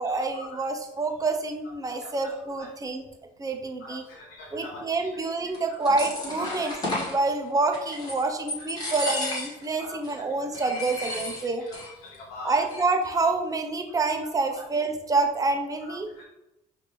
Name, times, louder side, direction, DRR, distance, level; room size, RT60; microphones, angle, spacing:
voice 1, 0.0-3.0 3.4-4.0 4.5-6.8 7.1-11.6 12.4-16.1, right 3 dB, 20° right, 4 dB, 0.6 m, -27 dB
voice 2, 3.8-4.7 6.4-6.6 9.8-10.0 12.0-12.6 16.2-16.3, left 2 dB, 90° left, -4 dB, 0.8 m, -41 dB
sound 1, 5.5-7.2 7.7-8.2 8.5-9.7 10.0-10.1 10.5-11.9 12.1-12.2 12.5-13.0, left 1 dB, 20° left, 1.4 m, -33 dB
5.1 x 2.6 x 3.1 m, 0.88 s
cardioid pair, 110°, 17 cm